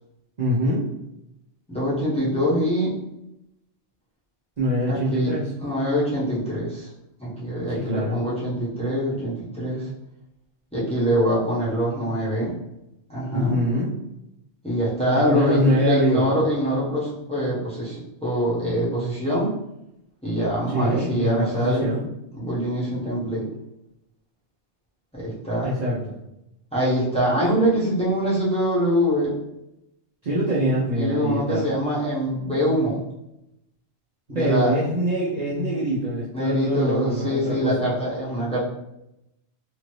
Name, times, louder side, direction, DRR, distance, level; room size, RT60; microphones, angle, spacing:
voice 1, 0.4-0.9 4.6-5.5 7.8-8.2 13.3-13.9 15.2-16.3 20.7-22.1 25.6-26.2 30.2-31.6 34.3-37.9, equal, 45° right, -8 dB, 0.6 m, -24 dB
voice 2, 1.7-2.9 4.9-6.9 7.2-9.9 10.7-12.5 13.1-13.6 14.6-19.5 20.2-21.9 22.3-23.5 25.1-25.7 26.7-29.3 30.9-33.0 34.3-34.8 36.3-38.6, equal, 5° left, -8 dB, 0.8 m, -24 dB
2.7 x 2.5 x 3.1 m, 0.86 s
omnidirectional pair, 1.2 m